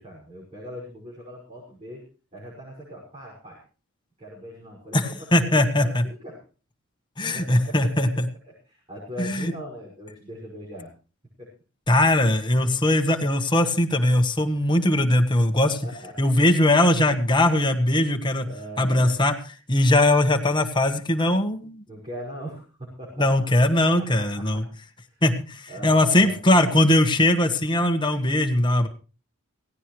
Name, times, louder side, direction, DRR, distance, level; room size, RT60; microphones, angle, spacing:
voice 1, 0.0-2.0 2.3-3.6 4.2-6.4 7.3-10.9 11.4-11.5 14.5-14.6 15.6-16.3 18.4-19.2 21.9-23.5 23.8-24.6 25.0-25.2 25.7-26.3, right 1 dB, 30° right, -5 dB, 5.9 m, -40 dB
voice 2, 4.9-6.0 7.2-8.2 9.2-9.5 11.9-15.8 16.2-18.5 18.8-19.3 19.7-21.8 23.2-24.6 25.2-28.9, left 1 dB, 20° left, 5 dB, 1.4 m, -20 dB
17.0 x 16.5 x 3.2 m, 0.36 s
head